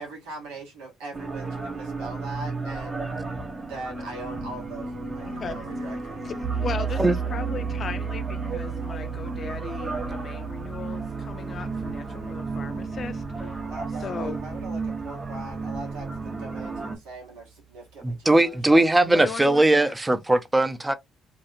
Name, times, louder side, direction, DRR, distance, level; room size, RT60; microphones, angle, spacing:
voice 1, 0.0-3.0 3.6-6.2 8.8-8.9 13.7-19.3, right 2 dB, 80° right, 1.1 m, -41 dB
sound 1, 1.1-17.0, right 3 dB, 35° right, 0.9 m, -34 dB
voice 2, 5.2-5.6 6.2-7.0 7.3-13.6 14.0-14.4 18.6-18.7 19.1-19.9, left 5 dB, 50° left, 0.5 m, -37 dB
sound 2, 6.4-15.3, right 7 dB, 60° right, 1.0 m, -34 dB
voice 3, 18.0-20.9, right 2 dB, 15° right, 0.6 m, -20 dB
2.9 x 2.4 x 2.6 m
hypercardioid pair, 55°, 0 cm